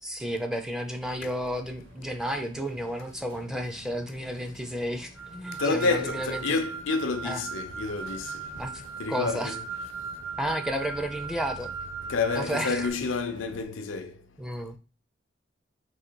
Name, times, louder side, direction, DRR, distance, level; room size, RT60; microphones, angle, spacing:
voice 1, 0.0-6.4 7.2-7.4 8.6-8.8 9.1-9.5 10.4-11.7 12.4-12.9 14.4-14.8, equal, 5° right, 0.4 m, -32 dB
sound 1, 0.9-13.6, right 2 dB, 65° right, 1.2 m, -50 dB
sound 2, 5.2-12.9, right 5 dB, 85° right, 1.6 m, -38 dB
voice 2, 5.6-8.4 9.0-9.6 12.1-14.1, left 3 dB, 85° left, 0.6 m, -29 dB
3.9 x 2.7 x 4.4 m
head